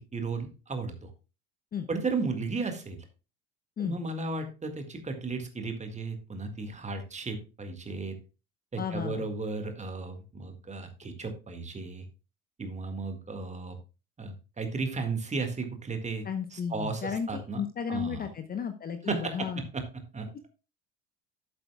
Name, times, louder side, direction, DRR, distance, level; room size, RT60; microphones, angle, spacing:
voice 1, 0.1-1.1 1.9-3.0 3.8-8.1 8.7-12.0 12.6-13.8 14.2-16.3 16.5-17.6 17.9-18.2 19.1-19.4 19.7-19.8 20.1-20.3, right 3 dB, 20° right, 6 dB, 1.8 m, -34 dB
voice 2, 8.8-9.3 16.2-19.7, left 7 dB, 25° left, 9 dB, 0.8 m, -34 dB
12.0 x 7.9 x 2.3 m, 0.31 s
figure-of-eight pair, 70°, 38 cm